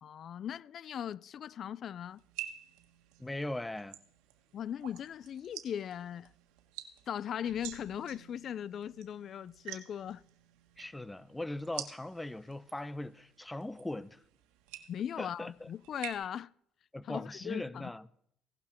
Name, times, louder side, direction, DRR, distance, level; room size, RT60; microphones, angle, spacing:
voice 1, 0.0-2.2 4.5-6.3 7.1-10.2 14.9-16.5 17.1-17.9, left 9 dB, 50° left, 0.4 m, -39 dB
sound 1, 2.2-16.1, right 13 dB, 90° right, 1.5 m, -49 dB
voice 2, 3.2-4.0 10.8-14.2 15.2-15.7 16.9-18.1, left 1 dB, 10° left, 0.6 m, -40 dB
17.0 x 12.0 x 4.4 m
supercardioid pair, 90°, 0 cm